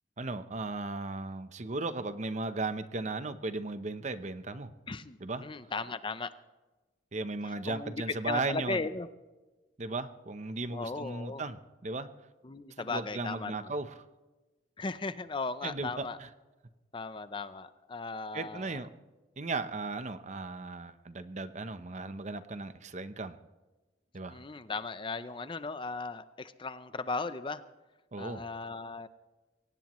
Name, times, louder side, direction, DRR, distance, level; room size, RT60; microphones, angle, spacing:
voice 1, 0.2-4.7 5.2-5.4 7.1-8.8 9.8-12.1 12.8-14.0 15.6-16.3 18.3-18.9 19.4-23.4 24.1-24.4 28.1-28.5, right 3 dB, 40° right, 11 dB, 0.8 m, -36 dB
voice 2, 4.9-6.3 7.4-9.1 10.7-11.4 12.4-13.7 14.8-16.2 16.9-18.8 24.3-27.6 28.2-29.1, left 3 dB, 30° left, 12 dB, 0.6 m, -37 dB
23.5 x 18.0 x 3.1 m, 1.2 s
head